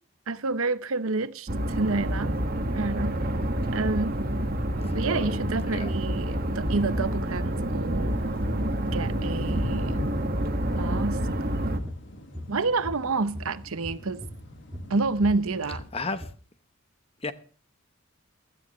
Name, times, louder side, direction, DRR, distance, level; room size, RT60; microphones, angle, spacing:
voice 1, 0.3-2.4 2.7-3.2 3.7-4.2 4.9-8.1 8.9-10.0 10.7-11.3 12.5-14.2 14.9-15.8, right 3 dB, 75° right, 0.8 m, -29 dB
sound 1, 1.5-11.8, right 1 dB, 45° right, 1.7 m, -28 dB
sound 2, 4.0-4.1 4.3-4.6 4.9-11.1 11.3-16.3, equal, 10° right, 2.1 m, -39 dB
voice 2, 4.8-5.3 5.6-5.9 15.7-16.3 17.2-17.3, left 3 dB, 25° left, 0.9 m, -34 dB
sound 3, 8.1-15.9, left 1 dB, 55° left, 1.8 m, -43 dB
16.5 x 13.0 x 3.1 m
head